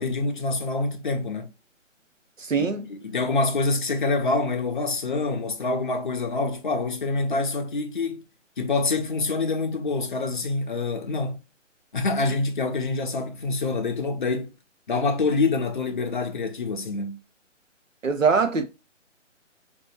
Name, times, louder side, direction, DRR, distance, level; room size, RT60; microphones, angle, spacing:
voice 1, 0.0-1.5 2.6-8.2 8.6-11.4 11.9-14.5 14.9-17.2, left 3 dB, 40° left, 0.5 m, -26 dB
voice 2, 2.4-2.9 18.0-18.7, right 5 dB, 85° right, 0.9 m, -22 dB
3.7 x 2.6 x 2.4 m
figure-of-eight pair, 140°, 38 cm